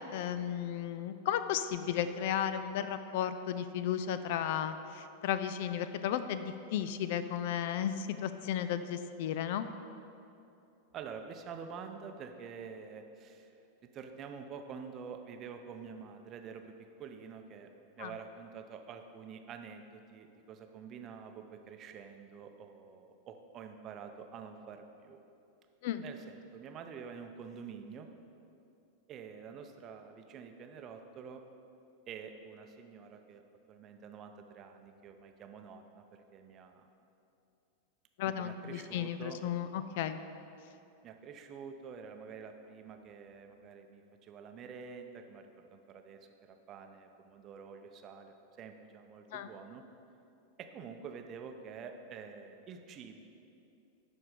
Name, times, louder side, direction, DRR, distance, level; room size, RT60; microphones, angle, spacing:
voice 1, 0.0-9.7 18.0-18.1 25.8-26.0 38.2-40.2 49.3-49.5, left 9 dB, 50° left, 11 dB, 0.3 m, -34 dB
voice 2, 10.9-13.5 13.8-16.7 17.0-17.7 17.9-25.2 26.0-28.1 29.1-31.4 32.1-33.4 33.7-36.9 38.2-39.4 41.0-49.8 50.6-53.2, right 6 dB, 30° right, 6 dB, 0.6 m, -48 dB
11.5 x 4.4 x 5.0 m, 2.7 s
figure-of-eight pair, 90°, 0 cm